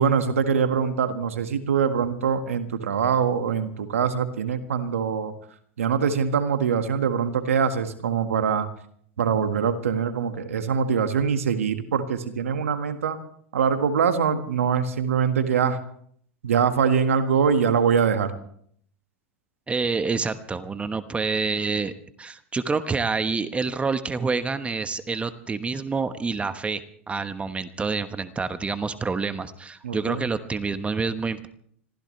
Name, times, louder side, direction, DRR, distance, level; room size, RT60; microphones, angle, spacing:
voice 1, 0.0-5.3 5.8-8.7 9.2-13.2 13.5-15.8 16.4-18.3 29.8-30.2, right 6 dB, 85° right, 8 dB, 1.7 m, -23 dB
voice 2, 19.7-21.9 22.2-31.5, right 4 dB, 15° right, 11 dB, 1.2 m, -27 dB
26.0 x 16.0 x 3.2 m, 0.62 s
hypercardioid pair, 100°, 7 cm